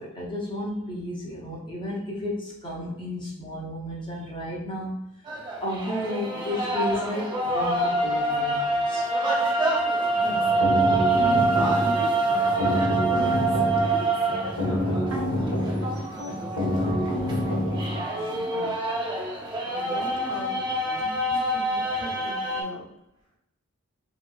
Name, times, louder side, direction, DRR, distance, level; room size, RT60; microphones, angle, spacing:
voice 1, 0.0-5.0 5.6-9.1, left 1 dB, 20° left, -4 dB, 0.7 m, -32 dB
sound 1, 5.3-22.6, right 2 dB, 20° right, 0.4 m, -26 dB
sound 2, 10.1-18.0, left 1 dB, 75° left, 1.0 m, -27 dB
voice 2, 10.2-12.8 13.5-14.3 15.1-18.8 19.8-20.6 21.0-22.9, equal, 60° right, -2 dB, 0.9 m, -39 dB
3.1 x 2.9 x 2.3 m, 0.86 s
head